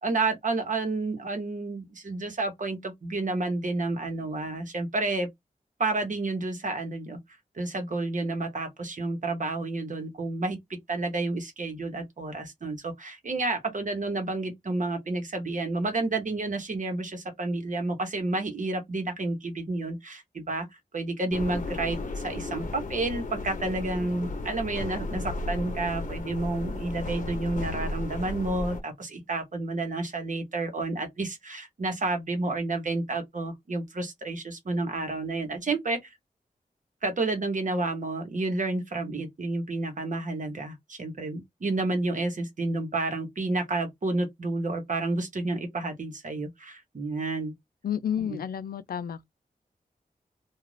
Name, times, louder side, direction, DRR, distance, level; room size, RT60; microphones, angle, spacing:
voice 1, 0.0-5.3 5.8-7.2 7.5-10.6 10.9-20.7 20.9-36.1 37.0-47.5 48.3-48.4, right 2 dB, 60° right, 1.0 m, -30 dB
sound 1, 21.3-28.8, left 2 dB, 55° left, 0.8 m, -34 dB
voice 2, 47.8-49.2, left 9 dB, 85° left, 0.4 m, -31 dB
2.5 x 2.4 x 3.2 m
wide cardioid pair, 80°, 15 cm